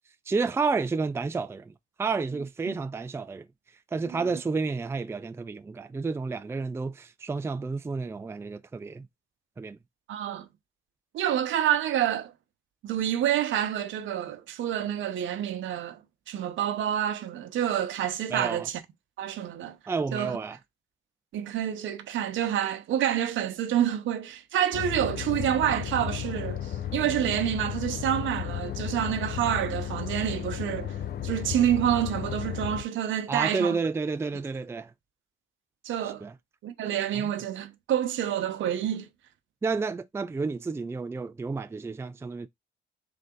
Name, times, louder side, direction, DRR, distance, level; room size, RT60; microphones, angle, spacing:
voice 1, 0.3-1.7 2.0-3.5 3.9-9.1 9.6-9.8 18.3-18.7 19.9-20.6 33.3-34.9 36.0-36.3 37.1-37.3 39.6-42.5, right 4 dB, 15° right, 0.4 m, -30 dB
voice 2, 10.1-10.5 11.1-12.3 12.8-16.0 16.3-18.8 19.2-19.8 20.1-20.4 21.3-31.0 31.2-33.8 35.8-36.2 36.6-39.1, right 10 dB, 75° right, 0.9 m, -28 dB
sound 1, 24.7-32.8, left 10 dB, 55° left, 0.6 m, -34 dB
3.9 x 3.4 x 3.8 m
cardioid pair, 90°, 20 cm